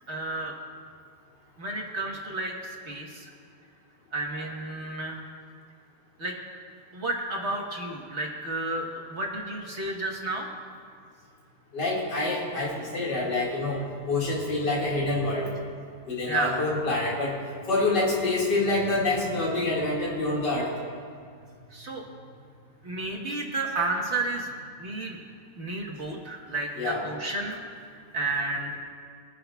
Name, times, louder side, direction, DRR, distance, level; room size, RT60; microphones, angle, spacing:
voice 1, 0.1-0.5 1.6-3.3 4.1-5.2 6.2-6.3 6.9-10.5 16.3-16.6 21.7-22.0 22.8-24.5 24.8-25.2 25.6-27.6 27.9-28.8, right 2 dB, 45° right, -1 dB, 1.5 m, -31 dB
voice 2, 11.7-15.5 16.1-17.4 17.7-20.7 26.7-27.1, left 2 dB, 80° left, -4 dB, 2.7 m, -27 dB
24.0 x 10.0 x 2.3 m, 2.2 s
omnidirectional pair, 1.8 m